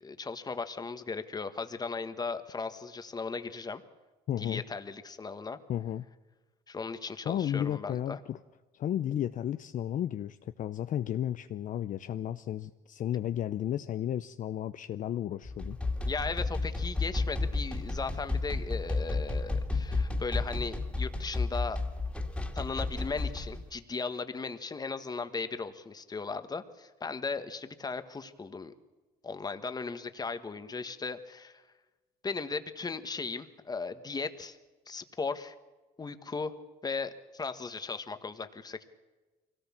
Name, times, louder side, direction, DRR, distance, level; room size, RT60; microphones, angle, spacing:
voice 1, 0.0-3.8 4.4-5.6 6.7-8.2 16.0-21.8 22.5-28.7 29.2-31.6 32.2-34.6 34.9-35.5 36.0-36.5 36.8-38.8, left 4 dB, 25° left, 9 dB, 1.4 m, -37 dB
voice 2, 4.3-4.6 5.7-6.1 7.3-8.4 8.7-15.8, left 10 dB, 50° left, 11 dB, 0.6 m, -33 dB
sound 1, 15.4-23.6, left 3 dB, 5° left, 2.5 m, -32 dB
23.5 x 17.5 x 7.3 m, 1.2 s
cardioid pair, 110°, 17 cm